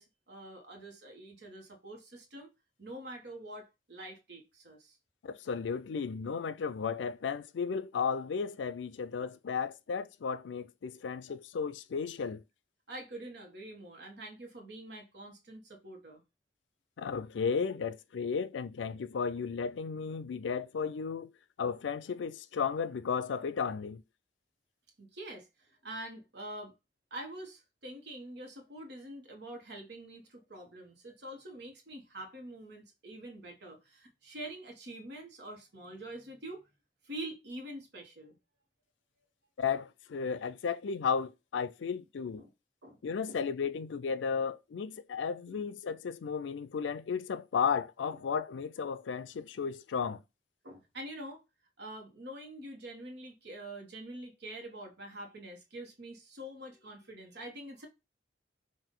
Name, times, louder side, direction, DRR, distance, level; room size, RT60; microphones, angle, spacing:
voice 1, 0.0-2.5 2.8-5.0 12.9-16.2 25.0-26.7 27.1-36.6 37.0-38.4 42.4-42.5 42.8-43.0 43.3-43.4 45.5-45.6 50.6-51.4 51.8-57.9, right 1 dB, 65° right, 1.2 m, -45 dB
voice 2, 5.2-12.4 17.0-21.3 21.6-24.0 39.6-42.4 43.0-50.2, left 6 dB, 85° left, 0.4 m, -34 dB
5.4 x 2.6 x 3.7 m
head